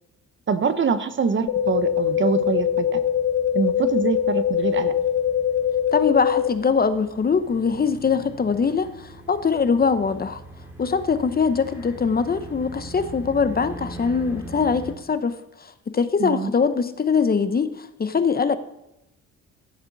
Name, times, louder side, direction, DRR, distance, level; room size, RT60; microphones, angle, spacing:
voice 1, 0.5-3.0 3.5-4.9 16.2-16.5, right 5 dB, 40° right, 11 dB, 0.9 m, -24 dB
sound 1, 1.5-6.5, left 9 dB, 60° left, 0.8 m, -22 dB
sound 2, 1.5-14.9, right 1 dB, 5° right, 2.5 m, -42 dB
voice 2, 5.9-8.9 9.3-10.4 10.8-15.4 15.9-18.6, left 5 dB, 30° left, 11 dB, 0.8 m, -22 dB
14.0 x 7.9 x 4.0 m, 0.86 s
cardioid pair, 90°, 30 cm